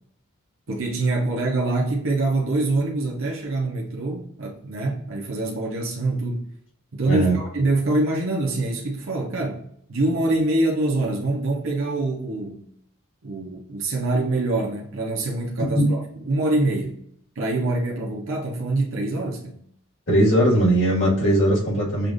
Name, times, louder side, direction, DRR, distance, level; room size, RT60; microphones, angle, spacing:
voice 1, 0.7-6.4 6.9-12.7 13.2-17.0 17.4-19.6, right 2 dB, 70° right, 0.8 m, -25 dB
voice 2, 7.1-7.4 15.7-15.8 20.1-22.1, right 1 dB, 60° left, 1.8 m, -19 dB
6.6 x 2.5 x 2.5 m
head